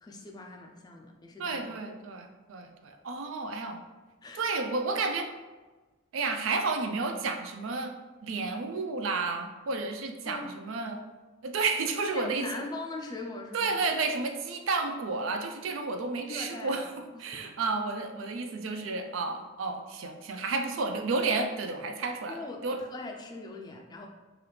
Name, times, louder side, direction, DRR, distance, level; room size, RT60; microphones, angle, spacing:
voice 1, 0.0-1.6 4.2-4.4 10.3-10.6 12.1-13.7 16.3-17.4 22.3-24.1, left 2 dB, 20° left, 2 dB, 0.3 m, -41 dB
voice 2, 1.4-3.8 4.3-5.3 6.1-7.9 8.2-11.0 11.4-12.4 13.5-16.9 17.2-22.8, right 3 dB, 85° right, 5 dB, 0.4 m, -31 dB
3.1 x 2.4 x 3.3 m, 1.2 s
head